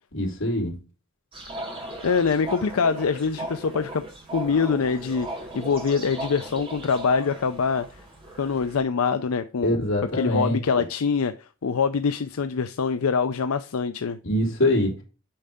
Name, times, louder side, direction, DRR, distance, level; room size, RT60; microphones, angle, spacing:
voice 1, 0.1-0.8 9.6-10.6 14.2-14.9, left 1 dB, 65° left, 3.4 m, -23 dB
sound 1, 1.3-8.8, right 1 dB, 25° right, 2.4 m, -37 dB
voice 2, 2.0-4.0 4.3-5.3 5.5-8.0 8.4-9.8 10.1-14.2, left 5 dB, 85° left, 0.5 m, -24 dB
8.7 x 5.5 x 3.6 m
head